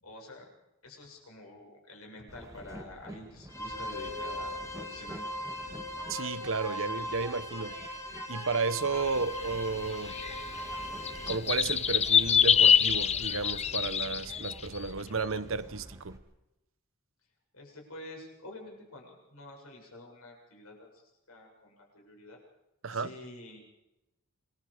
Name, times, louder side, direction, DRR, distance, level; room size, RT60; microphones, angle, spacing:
voice 1, 0.0-0.5 0.8-5.4 6.6-6.7 17.5-22.4 22.9-23.6, left 1 dB, 75° left, 7.3 m, -48 dB
Train, 2.3-16.2, right 1 dB, 15° right, 2.1 m, -49 dB
sound 1, 3.5-11.4, left 1 dB, 15° left, 2.1 m, -39 dB
voice 2, 6.1-7.8 8.3-10.2 11.3-16.2 22.8-23.1, right 4 dB, 60° right, 1.0 m, -33 dB
sound 2, 9.0-14.6, left 8 dB, 30° left, 0.7 m, -25 dB
28.0 x 21.5 x 5.1 m
head